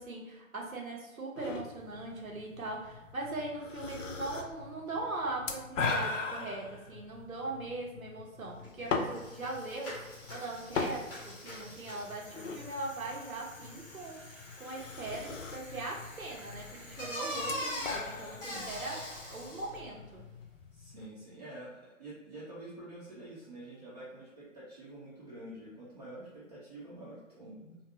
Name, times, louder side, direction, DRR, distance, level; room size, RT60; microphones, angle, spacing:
voice 1, 0.0-14.3 14.6-19.0 19.3-20.2, right 2 dB, 85° right, -2 dB, 0.9 m, -40 dB
sound 1, 1.4-21.1, left 4 dB, 65° left, 0.5 m, -41 dB
Bicycle, 8.6-8.7 9.0-19.8, equal, 15° left, 0.7 m, -44 dB
voice 2, 20.7-27.8, right 1 dB, 30° right, -8 dB, 0.5 m, -47 dB
2.6 x 2.3 x 2.6 m, 1.1 s
figure-of-eight pair, 130°, 40 cm